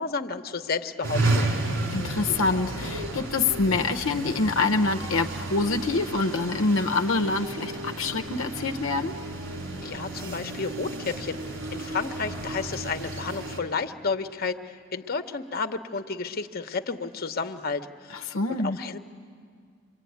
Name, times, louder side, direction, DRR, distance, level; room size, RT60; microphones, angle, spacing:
voice 1, 0.0-1.5 9.8-19.0, left 4 dB, 50° left, 8 dB, 1.0 m, -32 dB
sound 1, 1.0-13.6, right 2 dB, 70° right, 4.0 m, -32 dB
voice 2, 1.9-9.1 18.3-18.8, left 3 dB, 75° left, 4 dB, 0.8 m, -26 dB
27.0 x 23.0 x 9.4 m, 2.1 s
head